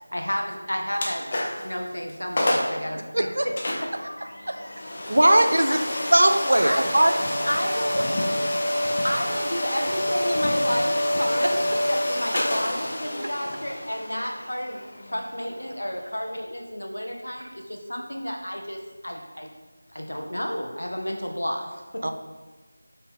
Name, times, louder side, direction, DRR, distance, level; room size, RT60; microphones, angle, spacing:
voice 1, 0.1-5.3 6.6-6.9 7.5-8.1 9.0-14.8 15.1-19.5 19.9-22.1, equal, 80° left, 2 dB, 1.3 m, -31 dB
sound 1, 0.9-1.7 2.1-2.2 2.4-2.8 3.6-16.3, left 1 dB, 35° left, 0.9 m, -28 dB
voice 2, 3.1-3.4 4.5-4.6 5.1-5.8 6.1-7.1 8.0-8.1 22.0-22.1, right 1 dB, 65° right, 5 dB, 0.7 m, -19 dB
voice 3, 6.6-9.0, equal, ahead, -19 dB, 2.0 m, -42 dB
6.9 x 5.6 x 3.7 m, 1.3 s
figure-of-eight pair, 170°, 0 cm